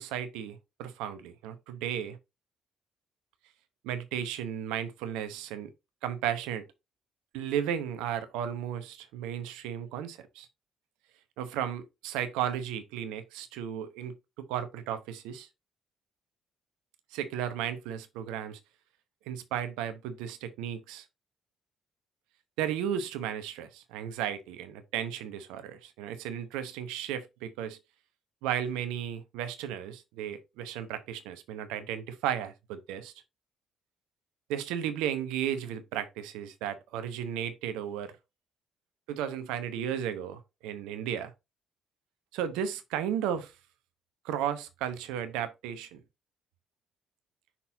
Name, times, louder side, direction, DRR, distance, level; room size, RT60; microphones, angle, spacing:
voice 1, 0.0-2.2 3.8-5.7 6.0-6.6 7.3-10.5 11.4-15.5 17.1-18.6 19.3-21.0 22.6-27.8 28.4-33.1 34.5-38.1 39.1-41.3 42.3-43.5 44.2-46.0, right 9 dB, 70° right, 0.8 m, -34 dB
6.0 x 4.2 x 3.8 m
figure-of-eight pair, 45°, 0 cm